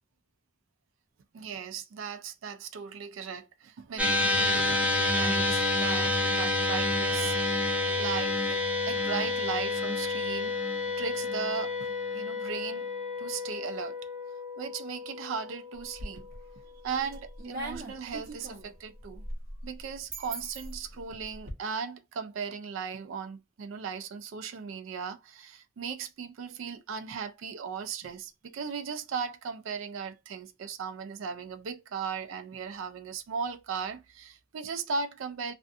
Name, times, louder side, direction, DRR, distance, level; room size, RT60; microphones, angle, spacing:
voice 1, 1.3-7.3 8.0-10.6 11.0-12.9 13.2-14.0 14.6-16.3 16.8-19.2 19.6-35.5, right 6 dB, 80° right, 0.4 m, -37 dB
sound 1, 4.0-16.5, left 2 dB, 5° right, 0.4 m, -29 dB
sound 2, 15.7-16.5 16.9-21.5, right 1 dB, 45° right, 0.8 m, -40 dB
2.5 x 2.3 x 2.4 m
head